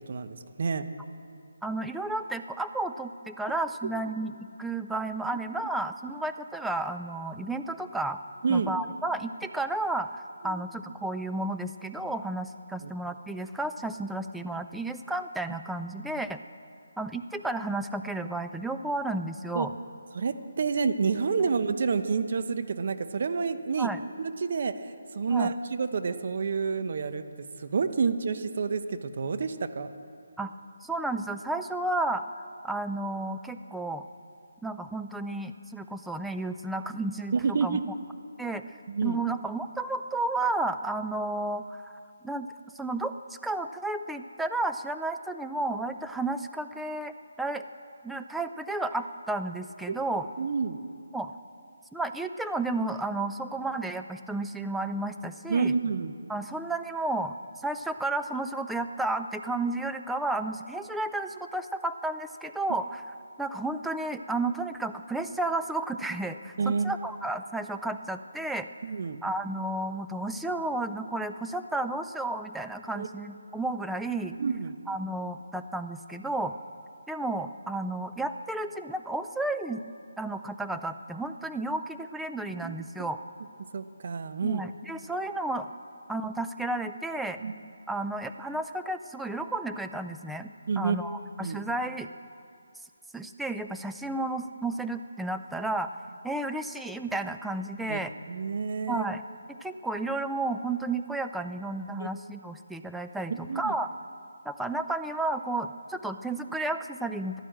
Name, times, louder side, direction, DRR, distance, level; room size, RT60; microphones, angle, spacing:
voice 1, 0.1-0.9 8.4-8.7 10.4-10.6 12.8-12.9 19.5-19.7 20.1-23.9 24.2-27.2 27.6-29.9 37.3-37.8 38.9-39.2 49.9-50.0 50.4-50.8 55.5-56.1 66.6-66.9 68.8-69.2 73.0-73.1 74.4-74.7 82.6-83.1 83.7-84.6 87.4-87.5 90.7-91.0 91.4-91.6 97.9-98.0 98.3-99.1 102.0-102.1 103.3-103.7, right 5 dB, 50° right, 10 dB, 0.9 m, -29 dB
voice 2, 1.6-8.2 8.5-16.4 17.0-19.7 21.4-21.5 23.8-24.0 25.3-25.5 30.4-30.5 30.8-32.2 32.6-34.1 34.6-37.3 37.6-37.8 38.4-38.6 39.0-41.9 42.2-47.6 48.0-50.3 51.1-51.3 51.9-55.7 56.3-57.3 57.6-63.0 63.4-68.7 69.2-74.4 74.9-76.5 77.1-79.8 80.2-83.2 84.4-85.7 86.1-87.4 87.9-92.1 93.1-95.9 96.2-98.1 98.9-99.2 99.5-103.9 104.5-107.4, right 2 dB, 5° right, 7 dB, 0.4 m, -32 dB
14.5 x 11.0 x 7.6 m, 2.4 s
figure-of-eight pair, 155°, 0 cm